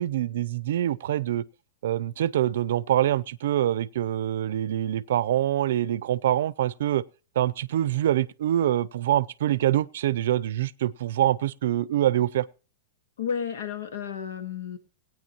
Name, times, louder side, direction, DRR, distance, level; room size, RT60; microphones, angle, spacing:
voice 1, 0.0-1.4 1.8-7.0 7.4-12.5, right 12 dB, 65° right, 0.5 m, -25 dB
voice 2, 13.2-14.8, left 7 dB, 80° left, 1.6 m, -32 dB
19.5 x 9.0 x 3.0 m
supercardioid pair, 170°, 0 cm